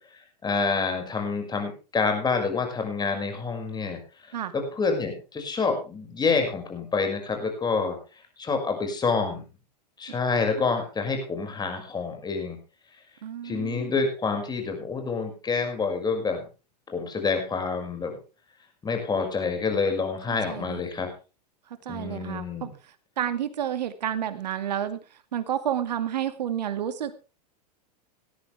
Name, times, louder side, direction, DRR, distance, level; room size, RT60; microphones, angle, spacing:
voice 1, 0.4-4.0 4.3-8.0 8.4-9.4 10.0-12.6 13.4-16.4 16.9-18.1 18.8-21.1 21.9-22.7, left 4 dB, 20° left, 5 dB, 6.0 m, -27 dB
voice 2, 13.2-13.9 20.3-20.8 21.8-25.0 25.3-27.2, right 10 dB, 75° right, 10 dB, 2.3 m, -30 dB
18.0 x 13.5 x 3.4 m, 0.33 s
hypercardioid pair, 105°, 21 cm